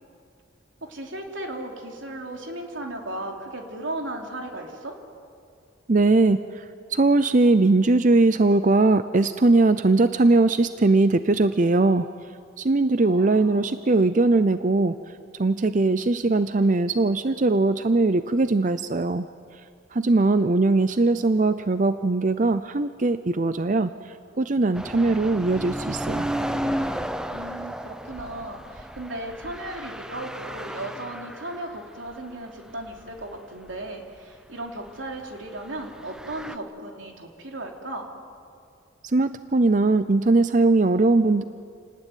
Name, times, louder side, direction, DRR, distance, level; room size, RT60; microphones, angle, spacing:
voice 1, 0.8-5.0 13.0-13.8 27.3-38.1, right 1 dB, 90° right, 1 dB, 3.4 m, -36 dB
voice 2, 5.9-6.6 6.9-12.1 12.6-15.0 15.4-19.3 19.9-26.2 39.0-41.4, right 2 dB, 40° right, 12 dB, 0.6 m, -20 dB
sound 1, 24.7-31.8 32.1-32.2 32.8-33.3 33.7-33.8 35.8-36.6, equal, 5° right, 0.7 m, -33 dB
28.5 x 19.0 x 9.2 m, 2.3 s
head